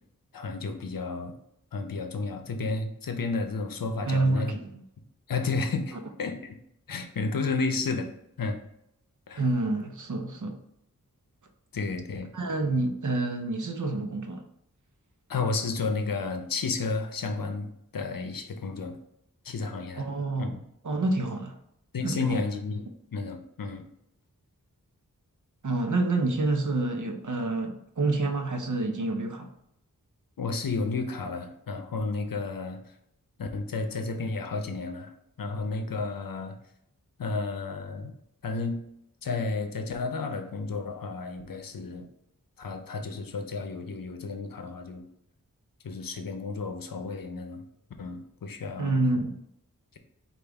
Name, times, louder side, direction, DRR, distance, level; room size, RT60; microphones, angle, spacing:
voice 1, 0.3-1.3 1.7-4.6 5.3-6.6 6.9-8.1 8.4-8.6 9.3-9.4 11.7-12.3 15.3-19.0 19.4-20.0 20.4-20.6 21.9-23.8 30.4-32.8 33.4-35.1 35.4-36.6 37.2-38.1 38.4-38.8 39.2-42.1 42.6-45.0 45.8-47.6 48.0-48.9, left 3 dB, 75° left, 6 dB, 0.7 m, -32 dB
voice 2, 4.1-4.8 9.4-10.6 12.3-14.4 19.9-20.6 20.8-21.6 22.0-22.4 25.6-29.5 48.8-49.4, right 2 dB, 60° right, 5 dB, 0.7 m, -28 dB
5.0 x 2.5 x 3.4 m, 0.77 s
wide cardioid pair, 40°, 35 cm